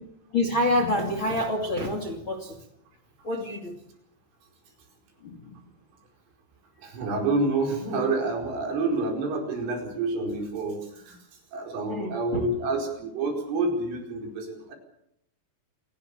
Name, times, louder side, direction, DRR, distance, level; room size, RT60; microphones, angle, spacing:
voice 1, 0.3-2.6 3.2-3.8 5.2-5.6 11.8-12.5, left 1 dB, 35° left, 6 dB, 2.2 m, -27 dB
voice 2, 6.8-14.8, right 3 dB, 75° right, 3 dB, 7.3 m, -28 dB
27.5 x 18.5 x 6.9 m, 0.74 s
omnidirectional pair, 5.8 m